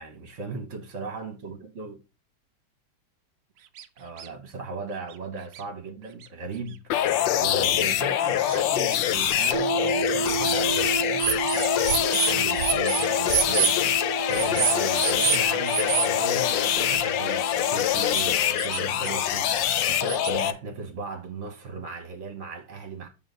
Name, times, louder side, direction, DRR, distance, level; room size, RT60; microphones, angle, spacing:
voice 1, 0.0-2.0 4.0-6.8 7.3-11.5 11.8-13.7 14.0-23.1, right 4 dB, 45° right, 1.3 m, -37 dB
sound 1, 3.8-3.9 4.2-4.3 5.1-5.2 5.5-5.6 6.2-6.3 7.2-7.3 7.7-7.8 8.5-9.5 10.2-10.6 11.2-13.8 14.3-15.4 15.7-16.1 17.9-18.2 18.6-19.3 19.5-20.3, right 10 dB, 85° right, 0.7 m, -28 dB
sound 2, 6.9-20.5, left 11 dB, 70° left, 1.3 m, -24 dB
sound 3, 9.5-18.4, right 5 dB, 60° right, 1.0 m, -33 dB
8.0 x 3.9 x 5.3 m
omnidirectional pair, 2.2 m